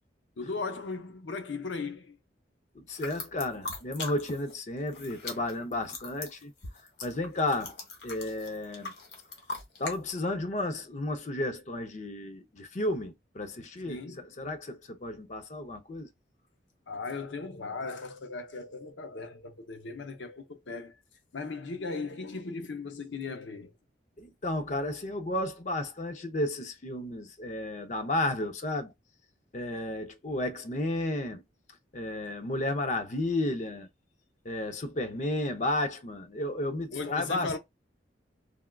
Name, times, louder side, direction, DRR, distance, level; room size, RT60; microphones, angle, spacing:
voice 1, 0.4-2.2 13.8-14.3 16.9-20.9 21.3-23.7 36.9-37.6, left 4 dB, 90° left, 0.7 m, -37 dB
sound 1, 2.9-4.5 4.8-10.0, left 3 dB, 65° left, 1.0 m, -41 dB
voice 2, 2.9-6.5 7.0-7.8 8.0-8.9 9.8-16.1 24.2-28.9 29.5-31.4 31.9-33.9 34.4-37.6, left 1 dB, 40° left, 0.6 m, -32 dB
3.5 x 2.2 x 2.2 m
head